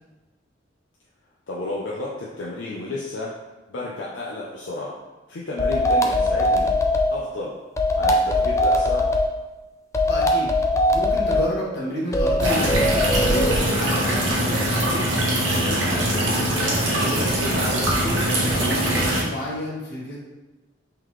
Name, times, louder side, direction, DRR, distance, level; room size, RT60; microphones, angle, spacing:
voice 1, 1.5-3.3 3.7-5.0 5.3-6.7 7.1-7.5 8.0-9.1, left 2 dB, 80° left, -5 dB, 0.6 m, -32 dB
sound 1, 5.6-7.1 7.8-9.3 9.9-11.5 12.1-13.6, left 1 dB, 15° left, 0.3 m, -20 dB
voice 2, 10.0-10.5 10.9-12.7 13.2-16.1 16.9-18.2 18.5-20.2, left 1 dB, 60° left, -5 dB, 1.2 m, -31 dB
sound 2, 12.4-19.2, right 1 dB, 85° right, 0.9 m, -22 dB
3.8 x 3.4 x 3.1 m, 1.1 s
head